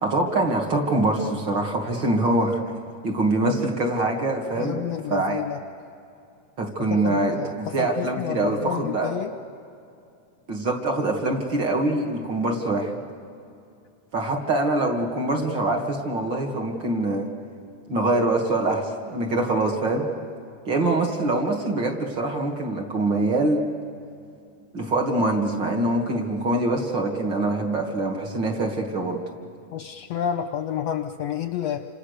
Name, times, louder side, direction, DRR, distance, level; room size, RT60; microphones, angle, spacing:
voice 1, 0.0-2.6 3.0-4.8 5.1-5.4 6.6-9.2 10.5-12.9 14.1-17.3 17.9-20.1 20.7-23.6 24.7-29.2, right 2 dB, 40° right, 1 dB, 2.6 m, -24 dB
voice 2, 4.5-5.6 6.8-9.3 29.7-31.9, left 9 dB, 70° left, 8 dB, 1.6 m, -30 dB
29.0 x 26.5 x 6.7 m, 2.5 s
omnidirectional pair, 3.6 m